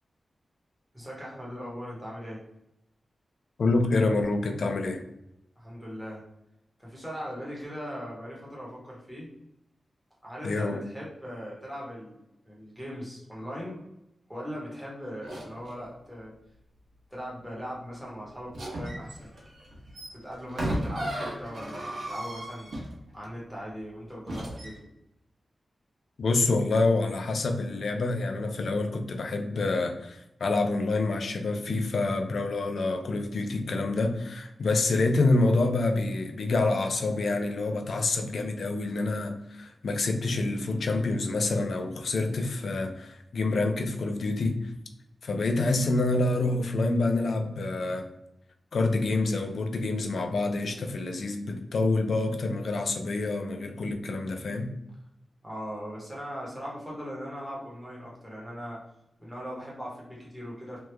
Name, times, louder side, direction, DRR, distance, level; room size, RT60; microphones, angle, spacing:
voice 1, 0.9-2.4 5.6-6.2 6.8-9.3 10.2-12.2 12.4-13.8 14.3-16.3 17.1-19.3 20.1-22.7 23.1-24.8 55.4-58.8 59.2-60.8, equal, ahead, -5 dB, 1.0 m, -39 dB
voice 2, 3.6-5.0 10.4-10.8 26.2-44.7 45.2-48.1 48.7-54.7, left 2 dB, 65° left, 5 dB, 0.4 m, -27 dB
sound 1, 15.2-15.7 18.5-23.3 24.3-24.7, right 1 dB, 70° right, 1.1 m, -35 dB
3.0 x 2.2 x 3.2 m, 0.83 s
wide cardioid pair, 160°, 0 cm